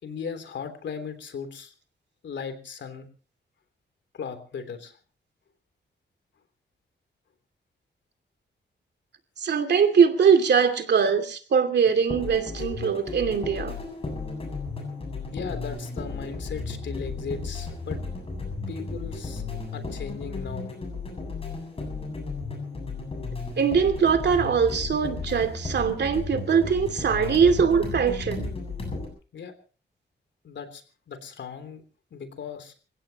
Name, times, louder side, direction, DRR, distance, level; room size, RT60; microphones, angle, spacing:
voice 1, 0.0-1.7 2.2-3.0 4.1-4.9 15.3-18.0 18.7-19.4 19.7-20.7 29.3-29.5 30.4-30.8 31.1-31.8 32.1-32.7, left 6 dB, 80° left, 9 dB, 3.4 m, -37 dB
voice 2, 9.4-13.7 23.6-28.6, right 6 dB, 70° right, 8 dB, 2.6 m, -22 dB
sound 1, 11.9-29.1, left 3 dB, 30° left, 7.6 m, -34 dB
29.0 x 16.0 x 3.0 m, 0.38 s
wide cardioid pair, 175°, 19 cm